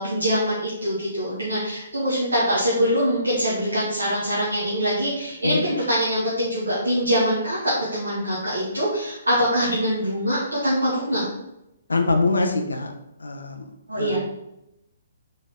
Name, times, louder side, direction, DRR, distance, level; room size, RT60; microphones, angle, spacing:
voice 1, 0.0-11.3 13.9-14.2, equal, 75° right, -8 dB, 2.2 m, -23 dB
voice 2, 11.9-12.9 13.2-13.6 13.9-14.2, left 3 dB, 75° left, 5 dB, 1.0 m, -23 dB
5.5 x 5.0 x 4.4 m, 0.87 s
figure-of-eight pair, 130°, 0 cm